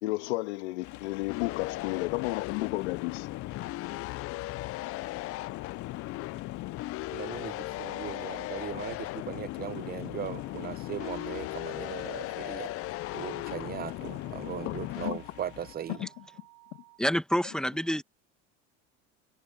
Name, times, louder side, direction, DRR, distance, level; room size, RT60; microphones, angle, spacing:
voice 1, 0.0-3.3 14.7-15.2 15.9-16.2, left 21 dB, 90° left, 1.8 m, -33 dB
Night Rain on an Indoor Skylight, 0.8-15.8, left 18 dB, 60° left, 2.0 m, -48 dB
sound 1, 1.3-15.1, left 18 dB, 45° left, 0.5 m, -37 dB
voice 2, 7.1-12.7 13.1-16.0, right 9 dB, 30° right, 0.7 m, -38 dB
sound 2, 10.3-17.0, right 22 dB, 70° right, 5.8 m, -57 dB
voice 3, 17.0-18.0, equal, ahead, 1.7 m, -28 dB
supercardioid pair, 120°, 33 cm